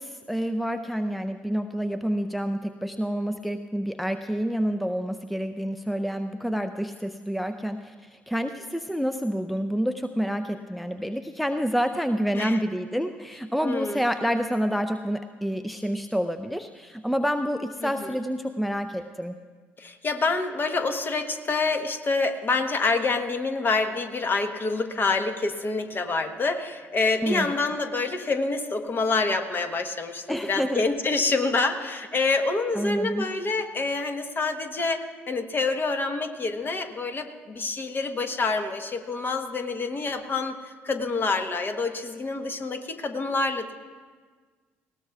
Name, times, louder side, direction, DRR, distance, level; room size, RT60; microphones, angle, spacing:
voice 1, 0.0-19.4 27.2-27.5 30.3-30.8 32.8-33.3, equal, ahead, 8 dB, 0.5 m, -28 dB
voice 2, 13.6-14.0 17.8-18.1 19.8-43.7, left 3 dB, 35° left, 7 dB, 1.1 m, -27 dB
20.0 x 17.5 x 2.4 m, 1.5 s
hypercardioid pair, 55°, 6 cm